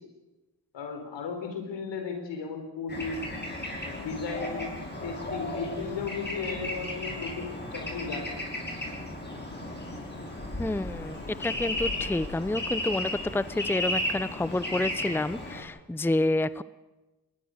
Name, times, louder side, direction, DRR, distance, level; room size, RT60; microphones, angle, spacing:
voice 1, 0.7-3.3 3.8-8.5, left 5 dB, 80° left, 5 dB, 4.5 m, -35 dB
Bird / Traffic noise roadway noise, 2.9-15.6, left 1 dB, 25° left, 6.5 m, -34 dB
voice 2, 10.6-16.6, left 2 dB, 5° left, 17 dB, 0.7 m, -29 dB
21.0 x 20.5 x 6.7 m, 1.1 s
supercardioid pair, 50°, 43 cm